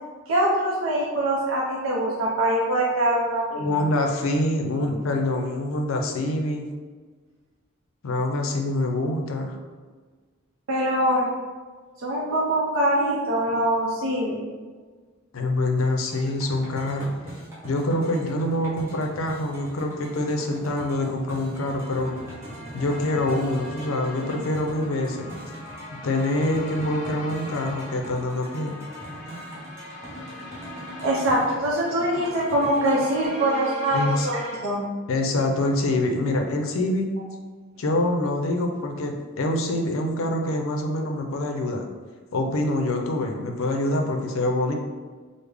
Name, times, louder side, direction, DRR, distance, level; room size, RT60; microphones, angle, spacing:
voice 1, 0.3-3.7 10.7-11.3 12.0-14.4 31.0-34.9, right 1 dB, 75° right, -4 dB, 0.5 m, -23 dB
voice 2, 3.5-6.6 8.0-9.6 15.3-17.2 17.6-22.2 22.7-25.3 26.0-28.8 33.9-34.3 35.1-37.1 37.8-41.9 42.3-44.7, left 1 dB, 80° left, 3 dB, 0.5 m, -25 dB
sound 1, 16.1-33.3, equal, 15° right, 0.8 m, -42 dB
sound 2, 21.2-34.6, equal, 40° left, 0.7 m, -40 dB
3.5 x 2.0 x 3.3 m, 1.4 s
head